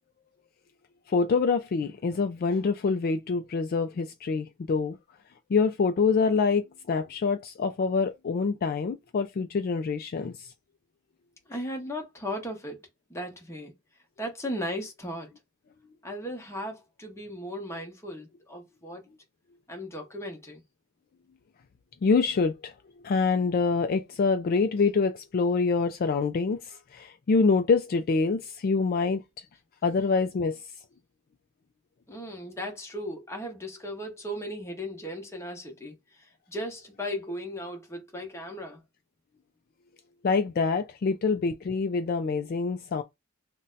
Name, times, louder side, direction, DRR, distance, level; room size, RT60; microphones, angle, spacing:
voice 1, 1.1-5.0 5.5-10.5 22.0-22.7 23.0-29.2 29.8-30.6 40.2-43.0, left 4 dB, 45° left, 0.3 m, -26 dB
voice 2, 11.5-12.8 13.1-13.7 14.2-15.3 16.0-19.0 19.7-20.6 32.1-38.8, equal, 15° left, 0.9 m, -36 dB
2.7 x 2.2 x 3.8 m
head